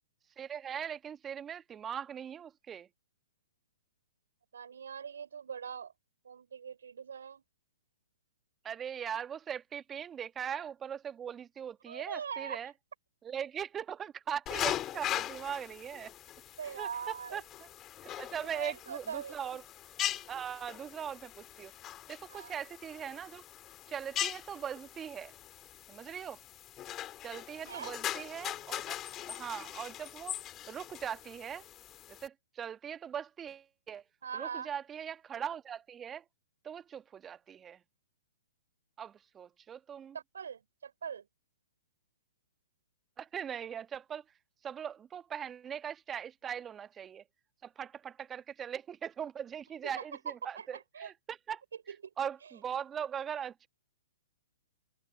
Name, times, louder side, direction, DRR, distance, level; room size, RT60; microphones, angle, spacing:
voice 1, 0.4-2.9 8.6-12.7 13.2-16.1 16.6-17.7 18.2-19.6 20.3-21.7 22.1-23.4 23.9-25.3 25.9-26.4 27.2-29.0 29.3-30.4 30.7-31.7 32.1-34.0 34.3-36.2 36.6-37.8 39.0-40.2 43.2-44.2 44.6-47.2 47.6-51.6 52.2-53.7, right 8 dB, 20° right, 1.6 m, -40 dB
voice 2, 4.5-5.9 6.2-7.4 11.9-12.6 16.6-17.4 18.5-19.6 22.3-22.5 27.6-27.9 34.2-34.7 40.1-41.3 49.8-49.9 50.2-51.1 51.9-52.0, right 7 dB, 70° right, 4.7 m, -41 dB
sound 1, 14.5-32.3, left 12 dB, 25° left, 3.6 m, -41 dB
figure-of-eight pair, 120°, 0 cm